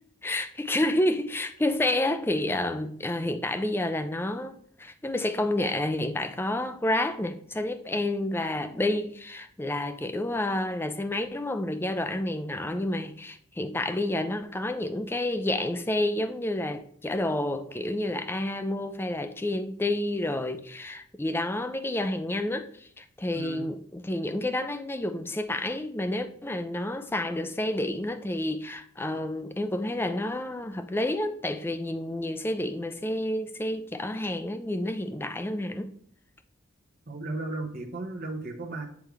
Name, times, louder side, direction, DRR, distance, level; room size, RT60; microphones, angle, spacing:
voice 1, 0.2-35.9, left 1 dB, 10° left, 0.4 m, -29 dB
voice 2, 37.1-38.8, right 2 dB, 45° right, 1.0 m, -35 dB
8.3 x 3.3 x 4.7 m
head